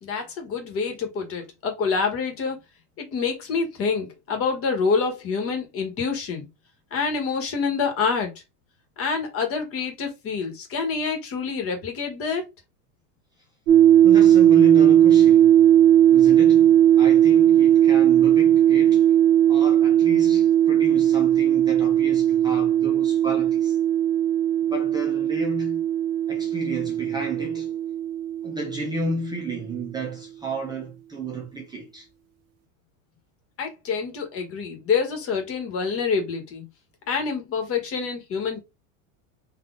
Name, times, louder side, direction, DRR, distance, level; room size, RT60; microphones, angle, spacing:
voice 1, 0.0-2.6 3.0-6.5 6.9-8.3 9.0-12.5 33.6-36.6 37.1-38.6, left 5 dB, 35° left, 1.5 m, -27 dB
sound 1, 13.7-29.2, right 11 dB, 70° right, 1.2 m, -18 dB
voice 2, 14.0-15.7 16.1-19.1 19.5-23.8 24.7-25.8 26.3-27.8 28.4-32.1, right 1 dB, 10° right, 0.8 m, -32 dB
4.1 x 2.7 x 3.8 m
supercardioid pair, 150°, 41 cm